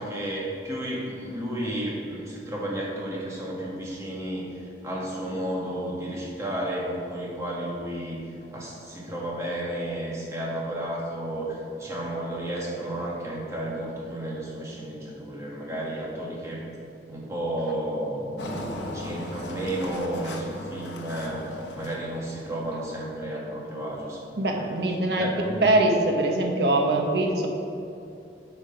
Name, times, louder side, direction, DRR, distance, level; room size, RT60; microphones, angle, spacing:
voice 1, 0.0-8.2 8.5-16.6 17.1-18.3 18.9-21.4 21.7-24.7 25.2-25.7, right 1 dB, 15° right, -5 dB, 1.6 m, -32 dB
Engine, 18.4-22.9, left 1 dB, 85° left, 0.9 m, -37 dB
voice 2, 24.4-25.3 25.6-27.5, right 2 dB, 70° right, 1 dB, 1.1 m, -22 dB
9.4 x 5.1 x 5.1 m, 2.7 s
head